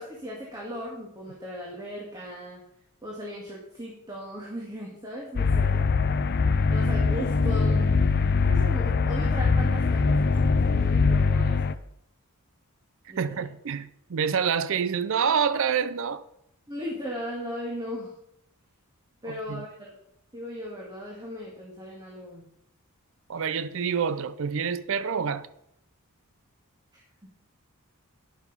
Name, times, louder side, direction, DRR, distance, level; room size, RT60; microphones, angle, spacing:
voice 1, 0.0-2.6 3.0-5.8 6.7-7.9 8.4-11.8 13.1-13.5 16.7-18.1 19.2-19.9 20.3-22.4 26.9-27.3, equal, 20° right, 1.8 m, -37 dB
sound 1, 5.4-11.7, left 4 dB, 45° left, 0.5 m, -22 dB
voice 2, 13.2-16.2 19.3-19.6 23.3-25.5, right 6 dB, 60° right, 0.5 m, -27 dB
10.0 x 7.0 x 5.4 m
head